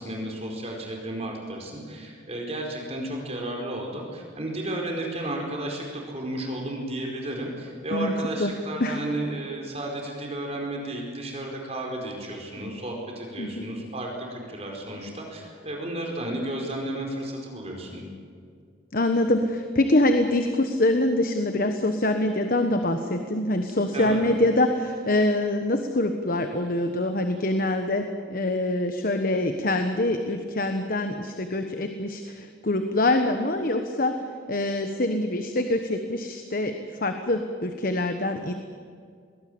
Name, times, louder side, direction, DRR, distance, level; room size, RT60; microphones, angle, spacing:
voice 1, 0.0-18.1 23.9-24.2, right 1 dB, 35° right, 1 dB, 4.6 m, -33 dB
voice 2, 18.9-34.2 34.5-36.7 37.0-38.5, left 1 dB, 50° left, 6 dB, 1.2 m, -24 dB
22.0 x 18.0 x 8.7 m, 2.2 s
head